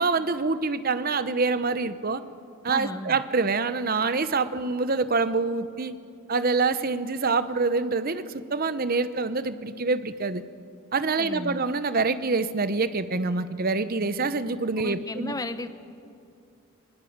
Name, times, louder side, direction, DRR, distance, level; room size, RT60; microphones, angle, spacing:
voice 1, 0.0-2.2 2.6-5.9 6.3-10.4 10.9-15.3, right 4 dB, 40° right, 13 dB, 0.8 m, -26 dB
voice 2, 2.7-3.2 11.2-11.6 14.8-15.7, left 1 dB, 15° left, 10 dB, 0.8 m, -34 dB
20.5 x 19.5 x 8.7 m, 2.5 s
head